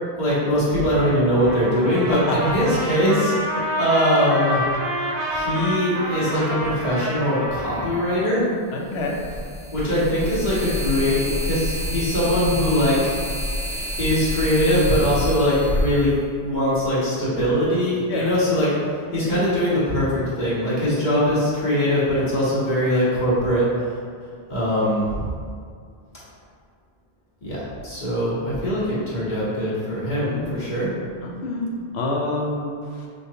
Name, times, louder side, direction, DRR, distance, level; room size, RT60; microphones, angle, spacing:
voice 1, 0.2-4.6 5.3-8.5 9.7-13.0 14.0-16.1 16.4-18.7 19.1-23.9 24.5-25.3 27.4-31.0, equal, 45° left, -10 dB, 1.3 m, -21 dB
Trumpet, 1.3-7.9, equal, 50° right, 0.6 m, -28 dB
voice 2, 2.1-2.5 8.7-9.3 18.1-18.3 31.2-33.1, left 2 dB, 85° left, -1 dB, 0.9 m, -27 dB
sound 1, 7.5-7.6 8.9-16.8, left 1 dB, 5° right, 1.3 m, -28 dB
5.1 x 2.4 x 2.8 m, 2.2 s
omnidirectional pair, 1.1 m